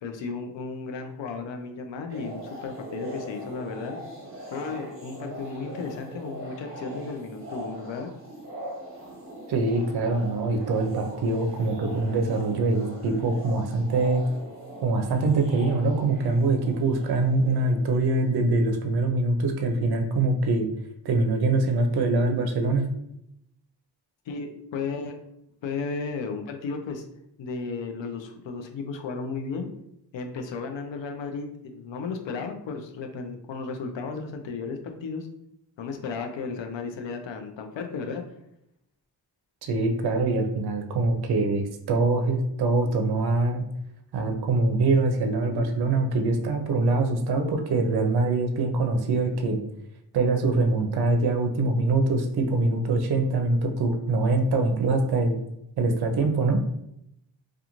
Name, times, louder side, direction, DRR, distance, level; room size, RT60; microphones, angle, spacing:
voice 1, 0.0-4.0 4.5-8.1 24.3-25.2 25.6-27.0 27.4-29.7 30.1-35.3 35.8-38.2, left 4 dB, 75° left, 5 dB, 0.6 m, -34 dB
sound 1, 2.1-18.3, right 1 dB, 30° right, 1.0 m, -41 dB
voice 2, 9.5-14.2 14.8-20.7 21.0-22.9 39.6-43.6 44.1-49.6 50.1-55.4 55.8-56.6, right 3 dB, 60° right, 5 dB, 0.5 m, -24 dB
2.4 x 2.3 x 2.9 m, 0.79 s
cardioid pair, 60°, 45 cm